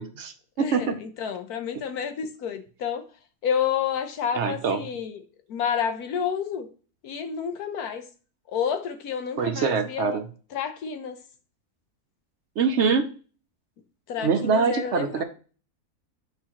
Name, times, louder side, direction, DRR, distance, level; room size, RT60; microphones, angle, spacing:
voice 1, 0.0-1.0 4.3-4.8 9.4-10.2 12.6-13.1 14.2-15.2, right 5 dB, 60° right, 7 dB, 0.9 m, -24 dB
voice 2, 0.6-3.0 3.4-5.2 5.5-6.7 7.0-8.0 8.5-10.2 10.5-11.2 14.1-15.2, left 7 dB, 85° left, 8 dB, 1.4 m, -29 dB
8.8 x 4.9 x 2.9 m, 0.38 s
omnidirectional pair, 1.6 m